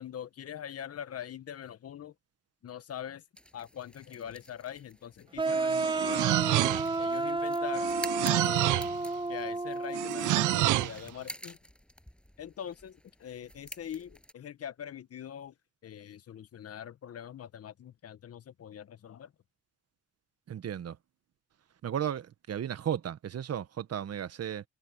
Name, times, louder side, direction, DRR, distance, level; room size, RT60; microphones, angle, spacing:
voice 1, 0.0-2.1 2.6-3.2 3.5-6.2 7.0-8.0 8.3-9.0 9.3-11.6 12.4-15.5 15.8-19.3, left 9 dB, 50° left, 1.2 m, -43 dB
sound 1, 3.4-14.3, equal, 5° left, 7.1 m, -49 dB
sound 2, 5.4-10.9, right 3 dB, 15° right, 1.2 m, -31 dB
sound 3, 5.5-7.1 7.7-9.0 9.9-11.0, right 16 dB, 80° right, 0.6 m, -28 dB
voice 2, 20.5-21.0 21.8-24.6, right 9 dB, 55° right, 1.5 m, -34 dB
cardioid pair, 90°, 30 cm